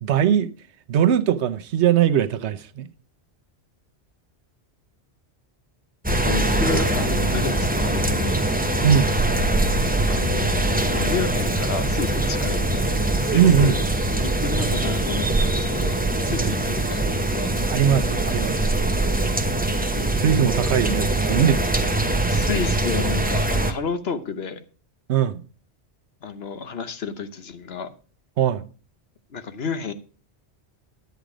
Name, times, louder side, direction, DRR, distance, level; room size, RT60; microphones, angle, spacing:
voice 1, 0.0-0.5 0.9-2.9 8.8-9.1 13.3-13.8 16.4-16.5 17.7-18.7 20.1-21.6 25.1-25.4 28.4-28.7, right 9 dB, 80° right, 1.0 m, -20 dB
sound 1, 6.0-23.7, right 2 dB, 10° right, 0.7 m, -22 dB
voice 2, 6.2-8.4 10.1-13.8 14.2-17.5 22.3-24.6 26.2-27.9 29.3-29.9, left 5 dB, 65° left, 1.2 m, -31 dB
10.5 x 8.1 x 4.9 m
omnidirectional pair, 1.1 m